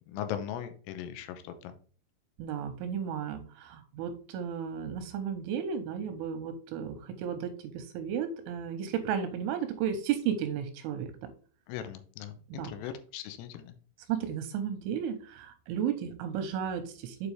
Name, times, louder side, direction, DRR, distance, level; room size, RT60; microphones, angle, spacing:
voice 1, 0.1-1.7 11.7-13.7, left 10 dB, 80° left, 9 dB, 3.3 m, -39 dB
voice 2, 2.4-11.3 12.5-12.7 14.1-17.3, right 8 dB, 85° right, 8 dB, 3.1 m, -34 dB
8.1 x 4.9 x 3.4 m, 0.41 s
omnidirectional pair, 5.9 m